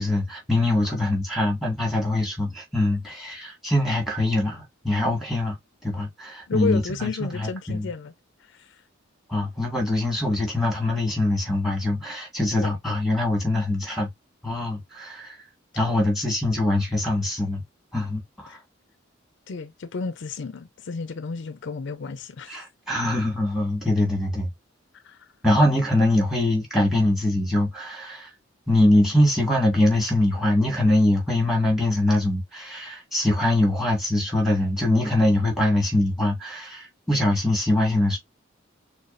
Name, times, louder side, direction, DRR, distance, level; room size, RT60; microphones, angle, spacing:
voice 1, 0.0-5.6 5.8-7.9 9.3-14.1 14.4-15.4 15.8-17.6 17.9-18.6 22.5-24.5 25.4-28.3 28.7-38.2, left 1 dB, ahead, 1.8 m, -23 dB
voice 2, 6.5-8.1 8.5-8.8 12.6-12.7 15.8-16.0 18.5-18.6 19.5-22.6 25.0-25.2, left 4 dB, 65° left, 0.5 m, -32 dB
6.3 x 2.3 x 2.5 m
head